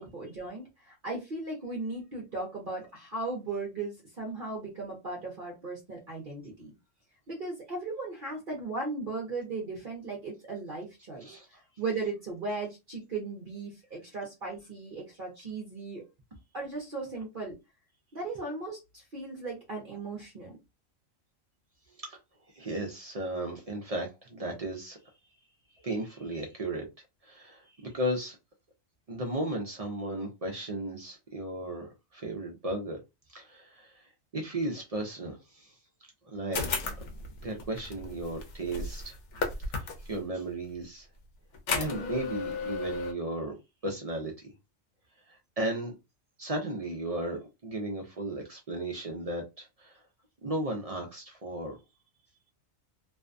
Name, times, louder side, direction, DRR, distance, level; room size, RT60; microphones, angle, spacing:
voice 1, 0.0-6.7 7.3-11.3 11.8-16.0 16.5-17.6 18.1-20.6, right 3 dB, 45° right, -2 dB, 0.8 m, -37 dB
voice 2, 22.5-25.0 25.8-26.8 27.2-28.4 29.1-33.0 33.3-35.7 36.3-36.9 37.4-39.2 39.7-41.1 41.7-43.6 43.8-44.5 45.3-45.9 46.4-50.0 50.4-51.8, right 1 dB, 65° right, 1 dB, 0.3 m, -35 dB
sound 1, 36.5-40.2 41.5-43.1, left 4 dB, 70° left, 0.9 m, -34 dB
2.6 x 2.2 x 2.4 m, 0.24 s
omnidirectional pair, 1.4 m